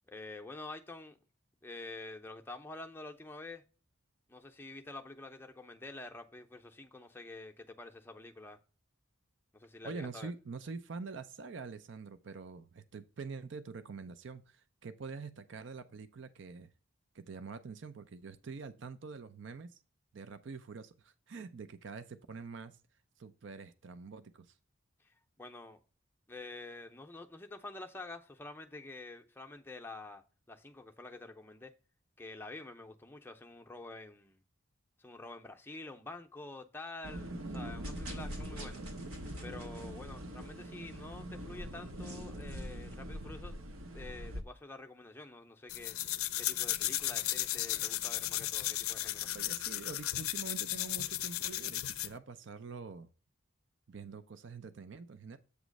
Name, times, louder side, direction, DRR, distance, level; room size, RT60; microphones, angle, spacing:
voice 1, 0.1-1.2 1.6-3.6 4.3-8.6 9.5-10.3 25.0-25.8 26.3-31.7 32.2-34.4 35.0-38.8 39.4-43.5 43.9-46.0 46.4-49.3, left 2 dB, 10° left, 0.6 m, -48 dB
voice 2, 9.8-16.7 17.1-19.8 20.1-22.8 23.2-24.6 49.3-53.1 53.9-55.4, right 4 dB, 55° right, 0.5 m, -45 dB
sound 1, 37.0-44.4, equal, 75° right, 0.9 m, -42 dB
sound 2, 37.8-43.0, right 2 dB, 90° right, 2.8 m, -54 dB
sound 3, 45.7-52.2, left 15 dB, 80° left, 0.4 m, -35 dB
8.2 x 3.0 x 6.3 m
head